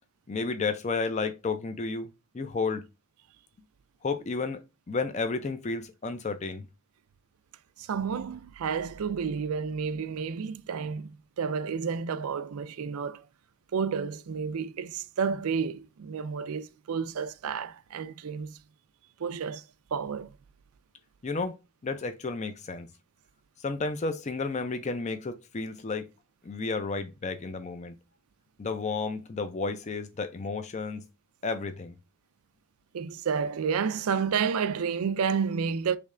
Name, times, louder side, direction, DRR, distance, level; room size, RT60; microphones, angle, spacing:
voice 1, 0.3-2.1 2.3-2.9 4.0-4.6 4.9-6.6 21.2-21.5 21.8-22.9 23.6-26.1 26.4-27.9 28.6-31.1 31.4-32.0, left 4 dB, 30° left, 0.4 m, -32 dB
voice 2, 7.8-13.3 13.7-18.6 19.2-19.6 19.9-20.4 32.9-36.0, right 6 dB, 80° right, 0.4 m, -30 dB
3.4 x 3.1 x 3.6 m
head